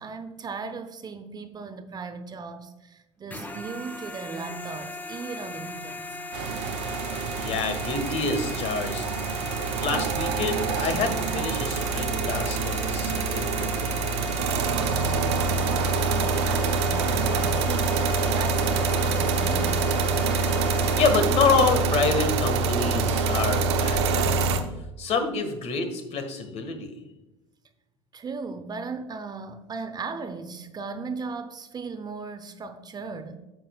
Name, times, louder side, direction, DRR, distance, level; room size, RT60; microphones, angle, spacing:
voice 1, 0.0-6.2 15.1-19.9 28.1-33.4, right 4 dB, 25° right, 9 dB, 0.8 m, -37 dB
sound 1, 3.3-21.1, left 3 dB, 10° left, 0.7 m, -38 dB
sound 2, 6.3-24.6, right 4 dB, 65° right, 0.8 m, -26 dB
voice 2, 6.9-9.1 9.8-13.7 20.5-24.5 25.0-26.9, left 4 dB, 45° left, 6 dB, 1.5 m, -27 dB
9.8 x 7.3 x 2.3 m, 1.0 s
figure-of-eight pair, 65°, 15 cm